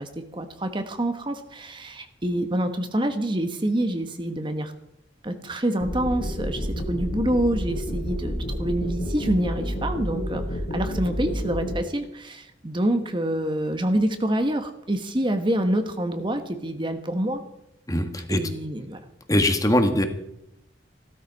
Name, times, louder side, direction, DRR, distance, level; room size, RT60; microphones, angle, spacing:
voice 1, 0.0-4.7 5.2-17.4 18.3-19.0, right 1 dB, 25° right, 7 dB, 1.2 m, -27 dB
sound 1, 5.8-11.7, equal, 80° left, 3.4 m, -30 dB
voice 2, 17.9-18.4 19.3-20.0, left 1 dB, 20° left, 7 dB, 1.5 m, -21 dB
16.0 x 13.0 x 5.3 m, 0.80 s
head